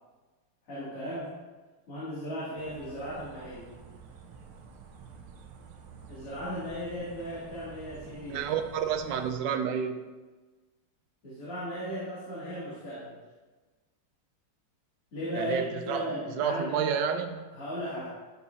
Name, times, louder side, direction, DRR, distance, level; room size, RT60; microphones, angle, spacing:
voice 1, 0.7-1.3 1.9-3.7 6.1-8.4 11.2-13.1 15.1-16.7 17.5-18.1, equal, 90° left, -12 dB, 3.5 m, -36 dB
sound 1, 2.6-9.3, right 5 dB, 85° right, 1.7 m, -49 dB
voice 2, 8.3-10.0 15.3-17.5, right 7 dB, 70° right, 7 dB, 1.1 m, -30 dB
12.0 x 5.8 x 2.7 m, 1.3 s
omnidirectional pair, 2.4 m